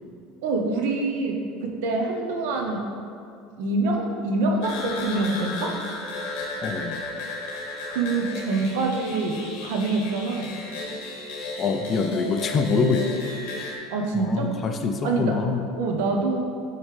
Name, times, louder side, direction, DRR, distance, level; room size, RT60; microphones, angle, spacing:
voice 1, 0.4-2.8 3.6-5.7 7.9-9.4 9.6-10.5 13.9-14.5 15.0-15.4 15.8-16.4, right 3 dB, 80° right, 2 dB, 0.8 m, -25 dB
sound 1, 4.6-13.8, left 2 dB, 75° left, 1.2 m, -34 dB
voice 2, 6.6-7.0 11.6-13.3 14.1-15.7, left 4 dB, 25° left, 5 dB, 0.4 m, -25 dB
9.2 x 3.2 x 3.3 m, 2.4 s
cardioid pair, 155°, 0 cm